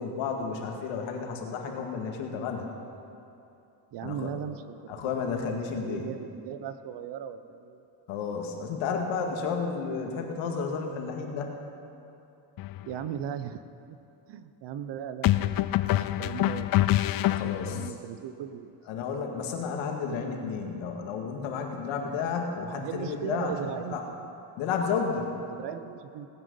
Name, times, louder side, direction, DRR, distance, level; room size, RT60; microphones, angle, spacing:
voice 1, 0.0-2.7 4.0-4.3 4.9-6.1 8.1-11.5 17.3-17.8 18.9-24.0 24.6-25.4, left 5 dB, 85° left, 2 dB, 2.0 m, -32 dB
voice 2, 3.9-7.8 12.8-13.6 14.3-17.0 17.6-18.8 22.8-24.3 24.9-25.0 25.5-26.3, right 9 dB, 60° right, 12 dB, 0.9 m, -38 dB
sound 1, 12.6-12.8 15.2-17.9, left 15 dB, 50° left, 0.5 m, -25 dB
18.0 x 10.0 x 5.5 m, 2.8 s
cardioid pair, 110°, 46 cm